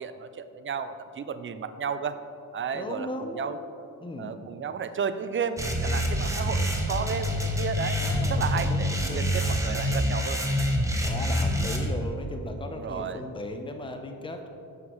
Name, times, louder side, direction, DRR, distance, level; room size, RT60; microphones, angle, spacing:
voice 1, 0.0-2.2 2.5-3.6 4.2-10.4 12.7-13.2, right 6 dB, 35° right, 11 dB, 0.4 m, -33 dB
voice 2, 2.7-3.6 4.0-4.4 8.0-9.4 11.0-14.5, left 1 dB, 15° left, 4 dB, 0.6 m, -37 dB
sound 1, 5.6-11.9, equal, 10° right, 0.9 m, -26 dB
9.4 x 6.1 x 3.0 m, 2.7 s
cardioid pair, 100°, 36 cm